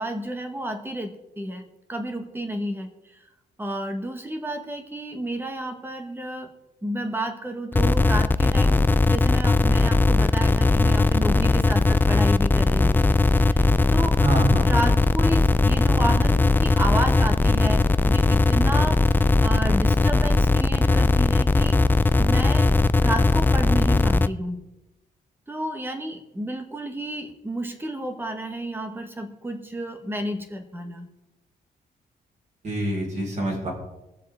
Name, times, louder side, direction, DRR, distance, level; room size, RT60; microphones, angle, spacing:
voice 1, 0.0-2.9 3.6-6.5 6.8-13.1 13.4-14.2 14.6-21.8 22.2-22.7 23.0-24.6 25.5-31.1, right 1 dB, 10° right, 5 dB, 1.5 m, -31 dB
sound 1, 7.7-24.3, left 3 dB, 10° left, 0.3 m, -19 dB
voice 2, 14.2-14.7 32.6-33.7, right 1 dB, 45° right, -2 dB, 4.8 m, -25 dB
22.0 x 7.5 x 3.7 m, 1.0 s
cardioid pair, 130°, 17 cm